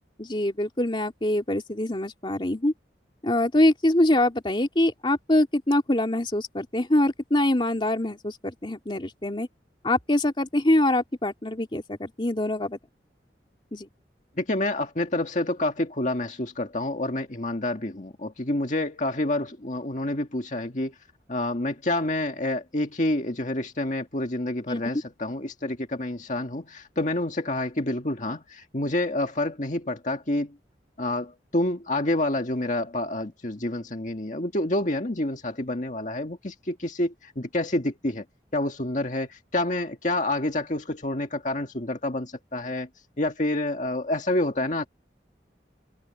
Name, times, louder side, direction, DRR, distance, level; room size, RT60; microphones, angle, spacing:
voice 1, 0.2-2.7 3.2-9.5 9.8-12.8 13.7-13.9 24.7-24.8, left 1 dB, 30° left, 2.7 m, -24 dB
voice 2, 14.4-20.9 21.3-30.5 31.0-38.2 38.5-42.9 43.2-44.9, left 1 dB, 45° left, 1.8 m, -28 dB
open air
head